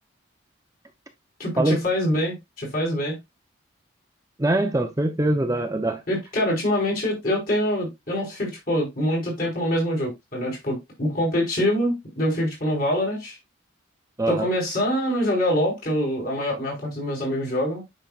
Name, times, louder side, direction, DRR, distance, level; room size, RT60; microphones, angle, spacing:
voice 1, 1.4-3.2 6.1-13.4 14.3-17.8, equal, 45° left, 4.5 m, -25 dB
voice 2, 4.4-6.0 14.2-14.5, right 1 dB, 15° right, 0.6 m, -23 dB
9.1 x 5.6 x 2.4 m
head